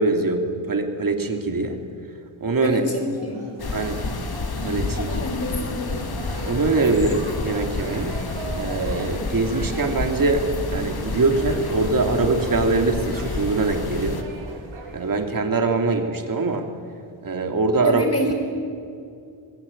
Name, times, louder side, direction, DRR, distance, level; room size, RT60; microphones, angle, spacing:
voice 1, 0.0-1.8 2.4-2.8 3.7-4.0 4.6-5.2 6.4-8.1 8.5-14.2 14.9-16.7 17.2-18.0, right 3 dB, 40° right, 4 dB, 2.9 m, -23 dB
voice 2, 2.6-3.4 5.1-5.8 17.8-18.3, left 1 dB, 30° left, 3 dB, 5.1 m, -27 dB
sound 1, 2.6-15.3, right 3 dB, 70° right, 6.6 m, -41 dB
sound 2, 3.6-14.2, left 3 dB, 45° left, 2.6 m, -29 dB
27.0 x 21.0 x 8.8 m, 2.4 s
wide cardioid pair, 160°, 50 cm